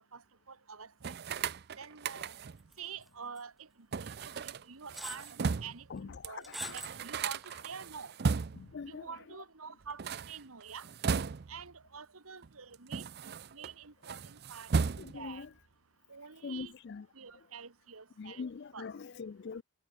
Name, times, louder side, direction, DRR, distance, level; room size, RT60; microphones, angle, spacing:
voice 1, 0.5-1.2 1.8-2.4 2.8-3.7 4.0-8.1 8.9-10.0 10.3-10.9 11.5-14.7 15.1-15.5 16.1-16.7 17.1-18.4 18.7-18.9, right 6 dB, 85° right, 1.7 m, -47 dB
sound 1, 1.0-2.7 3.9-5.9 6.2-6.3 6.5-8.8 9.8-11.7 12.4-13.7 14.0-15.4, right 5 dB, 50° right, 0.5 m, -36 dB
sound 2, 2.7-3.1 3.4-3.5 4.4-4.5 4.9-5.3 6.4-7.0 7.4-7.5, equal, ahead, 0.9 m, -42 dB
voice 2, 5.9-6.7 8.5-9.1 15.0-15.5 16.4-17.0 18.2-19.6, left 5 dB, 50° left, 0.4 m, -43 dB
head